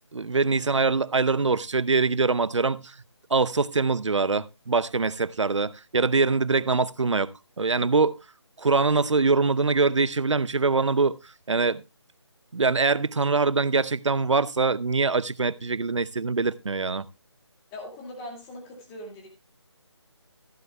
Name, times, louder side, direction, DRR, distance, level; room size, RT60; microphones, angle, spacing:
voice 1, 0.1-2.9 3.3-7.3 7.6-8.2 8.6-11.2 11.5-11.8 12.5-17.1, right 4 dB, 80° right, 0.7 m, -23 dB
voice 2, 17.7-19.3, left 1 dB, 15° left, 2.2 m, -40 dB
15.0 x 11.0 x 2.2 m
figure-of-eight pair, 160°, 15 cm